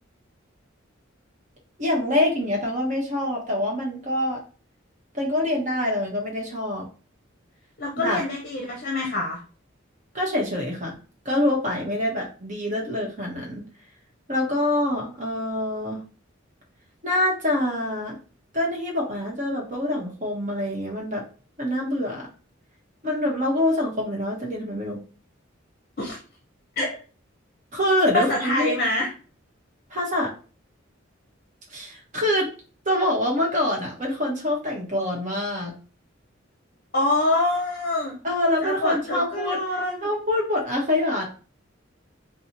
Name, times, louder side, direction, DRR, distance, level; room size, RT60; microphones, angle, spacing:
voice 1, 1.8-4.4 5.1-6.9 7.9-8.2 10.1-10.9 11.2-13.6 14.3-16.0 17.0-18.2 18.5-21.2 21.6-22.3 23.0-25.0 27.7-28.7 29.9-30.3 31.7-32.5 32.8-35.7 38.2-39.6 40.0-41.2, left 1 dB, 40° right, -2 dB, 1.2 m, -25 dB
voice 2, 7.8-9.4 26.0-26.2 26.8-27.0 28.1-29.1 36.9-38.2 38.6-40.0, left 2 dB, 50° left, 0 dB, 0.7 m, -25 dB
4.3 x 2.3 x 2.9 m, 0.38 s
head